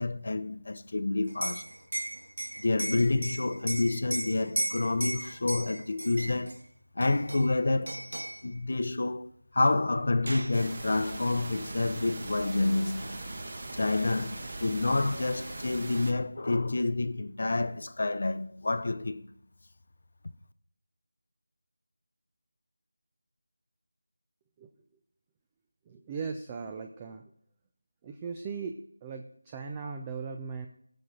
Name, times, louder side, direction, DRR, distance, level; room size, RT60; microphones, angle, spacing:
voice 1, 0.0-1.6 2.6-6.6 7.0-8.0 8.4-13.2 13.7-19.3, left 2 dB, 55° left, 0.8 m, -28 dB
Liquid, 1.3-6.6 7.0-7.6 7.9-8.4 9.6-9.7 10.0-10.6, right 1 dB, 80° right, 0.7 m, -36 dB
sound 1, 10.5-16.1, right 2 dB, 50° right, 1.7 m, -40 dB
voice 2, 25.9-27.2 28.0-30.7, right 5 dB, 15° right, 0.6 m, -38 dB
17.0 x 6.2 x 3.9 m
figure-of-eight pair, 170°, 0 cm